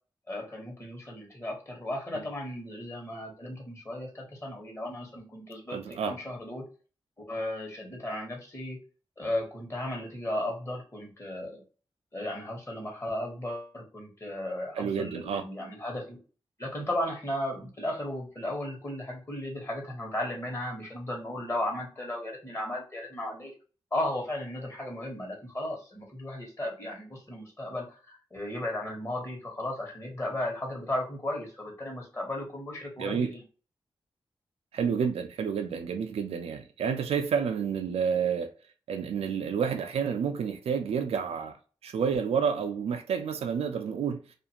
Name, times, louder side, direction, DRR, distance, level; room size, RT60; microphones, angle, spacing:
voice 1, 0.3-6.6 7.3-8.8 9.2-11.6 12.1-16.2 16.6-23.5 23.9-33.4, left 1 dB, 25° left, 1.1 m, -35 dB
voice 2, 5.7-6.1 14.7-15.4 33.0-33.3 34.7-38.5 38.9-41.6 41.8-44.2, right 6 dB, 90° right, 0.4 m, -29 dB
2.4 x 2.4 x 2.8 m
wide cardioid pair, 90°, 10 cm